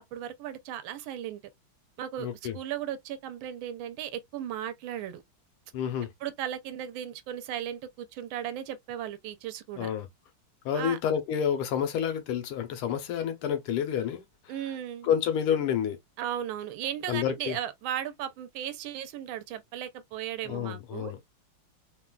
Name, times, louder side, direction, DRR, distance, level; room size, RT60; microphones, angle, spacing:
voice 1, 0.0-1.4 2.0-2.3 2.5-5.2 6.2-9.9 10.7-11.0 14.5-15.1 16.2-21.1, right 10 dB, 80° right, 1.4 m, -36 dB
voice 2, 2.2-2.6 5.7-6.1 9.8-10.1 10.6-14.5 15.0-16.0 17.1-17.6 20.4-21.2, left 9 dB, 85° left, 1.7 m, -29 dB
3.7 x 2.3 x 2.2 m
omnidirectional pair, 2.3 m